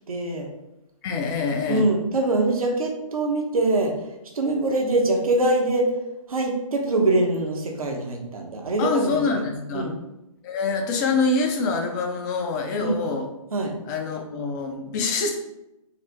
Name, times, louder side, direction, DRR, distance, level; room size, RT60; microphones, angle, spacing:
voice 1, 0.1-0.5 1.7-4.0 4.3-5.9 6.3-9.4 9.7-9.9 12.8-13.0 13.5-13.7, right 2 dB, 80° right, 1 dB, 1.1 m, -23 dB
voice 2, 1.0-1.9 8.8-9.9 10.4-13.2 13.9-15.4, left 4 dB, 30° left, 3 dB, 0.7 m, -25 dB
4.2 x 2.1 x 4.2 m, 0.91 s
hypercardioid pair, 135°, 18 cm